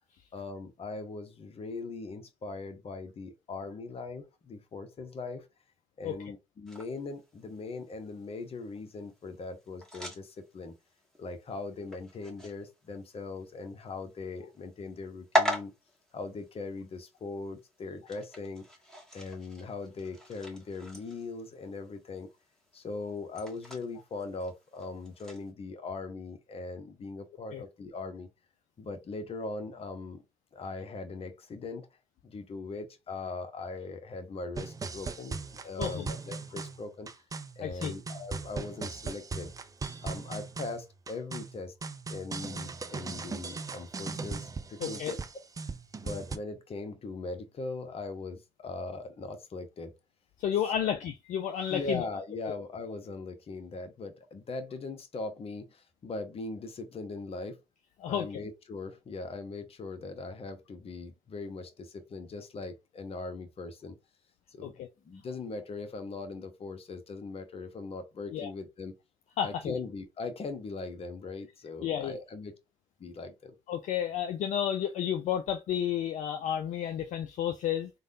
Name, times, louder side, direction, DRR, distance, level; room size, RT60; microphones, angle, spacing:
voice 1, 0.3-5.5 6.0-10.7 11.2-15.7 16.1-18.6 19.1-22.3 22.7-28.3 28.8-30.2 30.5-31.9 32.2-37.2 37.6-39.5 40.0-41.7 42.1-45.2 46.0-49.9 50.5-50.9 51.7-57.6 58.0-64.0 64.5-68.9 69.4-72.6 73.0-73.5, left 3 dB, 40° left, 0.8 m, -40 dB
sound 1, 6.7-25.5, equal, 5° left, 1.3 m, -40 dB
sound 2, 34.6-46.4, right 4 dB, 25° right, 0.4 m, -39 dB
voice 2, 37.6-37.9 44.8-45.1 50.4-52.0 58.0-58.3 64.6-64.9 68.3-68.5 69.4-69.8 71.8-72.2 73.7-77.9, left 9 dB, 60° left, 0.4 m, -31 dB
3.3 x 2.2 x 2.6 m
hypercardioid pair, 45°, 15 cm